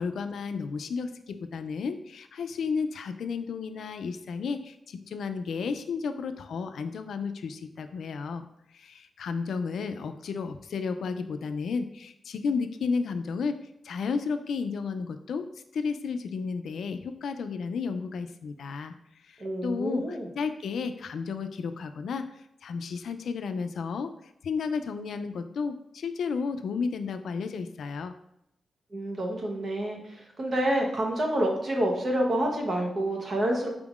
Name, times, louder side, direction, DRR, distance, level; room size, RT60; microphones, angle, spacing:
voice 1, 0.0-8.5 8.7-13.5 13.8-15.5 15.7-18.9 19.2-22.3 22.6-28.1, left 5 dB, 85° left, 9 dB, 0.3 m, -32 dB
voice 2, 19.4-20.3 28.9-33.7, right 1 dB, 40° right, 0 dB, 0.8 m, -28 dB
5.0 x 3.5 x 2.4 m, 0.78 s
wide cardioid pair, 175°, 0 cm